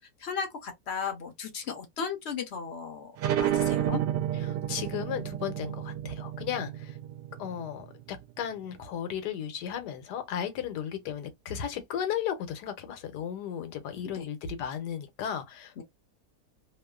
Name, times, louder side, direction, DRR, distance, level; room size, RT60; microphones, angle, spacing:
voice 1, 0.2-3.1 3.4-4.0 14.0-14.3 15.8-15.9, left 6 dB, 60° left, 0.7 m, -35 dB
sound 1, 3.2-8.4, right 11 dB, 85° right, 1.2 m, -31 dB
voice 2, 4.3-7.0 7.4-15.8, left 9 dB, 80° left, 1.3 m, -35 dB
3.0 x 2.1 x 2.2 m
omnidirectional pair, 1.8 m